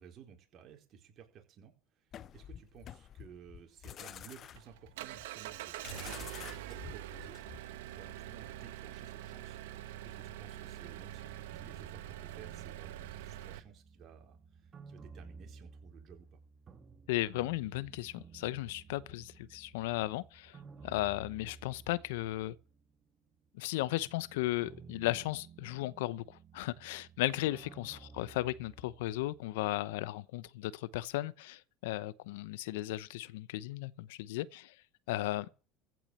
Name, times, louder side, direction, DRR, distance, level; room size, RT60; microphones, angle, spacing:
voice 1, 0.0-7.4 7.8-16.4 28.1-28.3, right 7 dB, 50° right, 4.5 m, -56 dB
sound 1, 2.1-7.8, left 10 dB, 45° left, 0.8 m, -49 dB
Engine, 4.1-13.6, right 13 dB, 85° right, 1.2 m, -45 dB
sound 2, 11.1-23.1 23.4-29.8, right 5 dB, 30° right, 2.5 m, -55 dB
voice 2, 17.1-20.6 20.8-22.6 23.5-34.7 35.1-35.5, left 17 dB, 85° left, 0.8 m, -35 dB
15.0 x 6.0 x 8.1 m
supercardioid pair, 100°, 0 cm